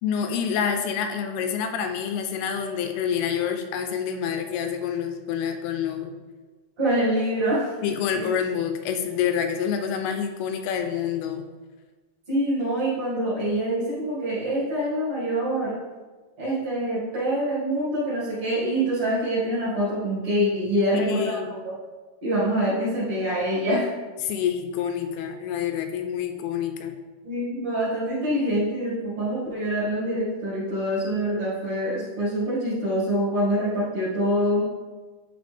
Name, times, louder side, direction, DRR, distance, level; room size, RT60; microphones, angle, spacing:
voice 1, 0.0-6.2 7.8-11.4 20.9-21.5 24.2-27.0, left 8 dB, 85° left, 6 dB, 2.3 m, -27 dB
voice 2, 6.8-7.7 8.1-8.3 12.3-15.8 16.4-21.4 21.6-21.7 22.2-23.9 27.2-34.6, right 1 dB, 40° right, -9 dB, 2.4 m, -25 dB
9.2 x 4.0 x 3.4 m, 1.3 s
omnidirectional pair, 4.9 m